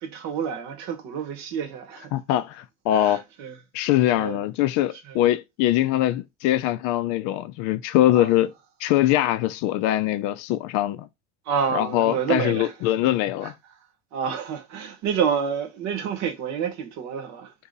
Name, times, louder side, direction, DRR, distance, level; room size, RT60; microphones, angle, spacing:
voice 1, 0.0-2.1 2.9-3.5 3.8-3.9 4.2-4.4 5.1-5.2 8.1-8.3 11.5-12.7 13.4-13.5 14.1-17.5, right 7 dB, 50° right, 1.0 m, -28 dB
voice 2, 2.1-3.2 3.7-8.5 8.8-11.1 11.7-13.5, left 13 dB, 55° left, 0.5 m, -22 dB
2.7 x 2.7 x 3.9 m
hypercardioid pair, 90°, 35 cm